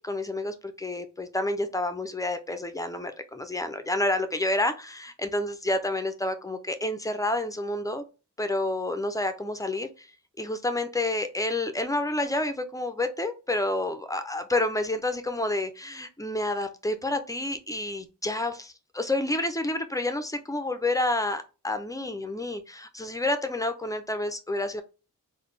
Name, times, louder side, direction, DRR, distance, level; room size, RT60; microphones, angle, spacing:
voice 1, 0.0-8.0 8.4-10.1 10.4-24.8, left 1 dB, 10° left, 0.5 m, -29 dB
4.0 x 2.3 x 3.2 m
wide cardioid pair, 115°, 34 cm